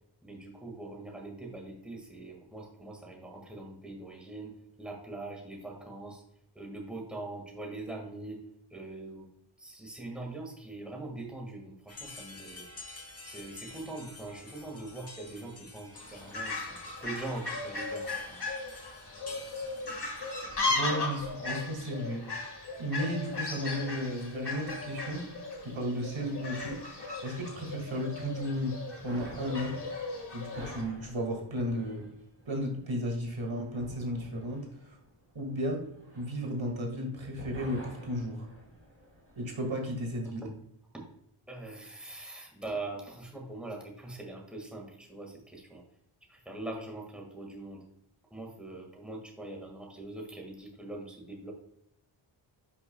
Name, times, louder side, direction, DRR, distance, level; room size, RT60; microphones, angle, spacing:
voice 1, 0.2-4.5 4.8-6.2 6.5-8.4 8.7-9.3 9.6-12.7 13.2-18.4 40.2-40.5 40.9-41.0 41.5-45.8 46.3-47.8 48.3-51.5, right 2 dB, ahead, 0 dB, 1.8 m, -42 dB
sound 1, 11.9-20.4, left 2 dB, 30° left, 1.1 m, -50 dB
Fowl, 15.9-30.8, left 3 dB, 50° left, 1.8 m, -37 dB
voice 2, 20.6-22.3 22.8-25.3 25.6-29.8 30.3-32.1 32.5-35.0 35.3-35.9 36.1-38.5 39.4-40.5, equal, 65° right, 2 dB, 2.1 m, -34 dB
sound 2, 29.0-37.0 37.3-39.7, equal, 25° right, 3.1 m, -50 dB
11.0 x 5.9 x 2.3 m, 0.73 s
wide cardioid pair, 120°, 50 cm